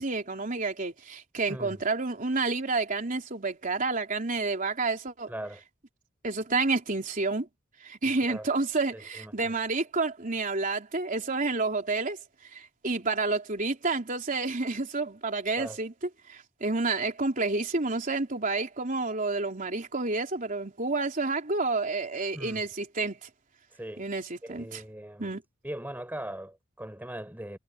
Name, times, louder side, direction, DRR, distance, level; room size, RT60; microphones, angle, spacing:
voice 1, 0.0-5.3 6.2-7.5 7.8-12.2 12.5-15.9 16.3-23.3 24.0-24.8 25.2-25.4, right 3 dB, 45° right, 3.5 m, -29 dB
voice 2, 1.5-1.8 5.3-5.6 8.3-8.5 8.9-9.5 15.6-15.8 22.3-22.6 23.7-24.1 24.4-25.3 25.6-27.6, right 1 dB, 10° right, 5.7 m, -40 dB
head